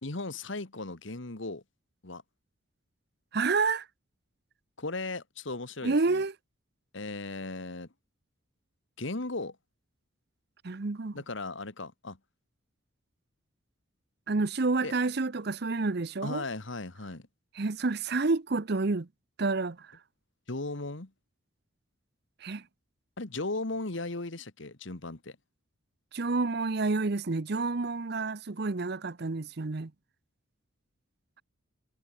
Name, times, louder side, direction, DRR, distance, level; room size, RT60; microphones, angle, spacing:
voice 1, 0.0-1.6 2.0-2.2 4.8-6.2 6.9-7.9 9.0-9.6 11.1-12.2 14.8-14.9 16.2-17.3 20.5-21.1 23.2-25.4, left 2 dB, 65° left, 1.6 m, -36 dB
voice 2, 3.3-3.9 5.8-6.3 10.6-11.1 14.3-16.4 17.6-19.1 19.4-19.9 22.4-22.6 26.1-29.9, right 3 dB, 50° right, 0.7 m, -29 dB
head